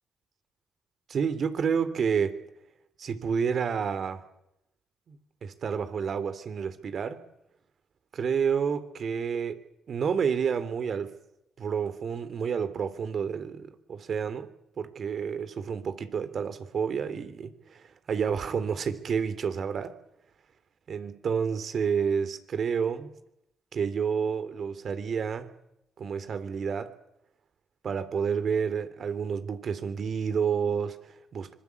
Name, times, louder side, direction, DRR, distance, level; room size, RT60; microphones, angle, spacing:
voice 1, 1.1-2.4 3.0-4.2 5.1-5.2 5.4-7.2 8.1-9.6 9.9-11.1 11.6-14.5 14.8-20.0 20.9-23.1 23.7-25.5 26.0-26.9 27.8-31.5, right 6 dB, 60° right, 12 dB, 3.1 m, -29 dB
25.5 x 22.0 x 8.4 m, 0.83 s
supercardioid pair, 55°, 0 cm